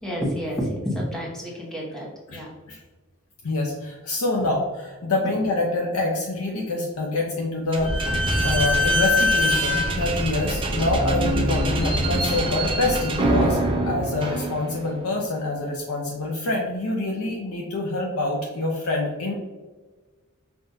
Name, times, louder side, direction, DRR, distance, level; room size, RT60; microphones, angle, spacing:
voice 1, 0.0-2.5, equal, 5° left, -5 dB, 1.0 m, -29 dB
voice 2, 3.4-13.6 13.9-19.3, left 2 dB, 75° left, -1 dB, 0.6 m, -26 dB
Slam / Squeak, 7.7-15.0, equal, 25° right, 0.5 m, -23 dB
5.8 x 2.5 x 2.6 m, 1.3 s
head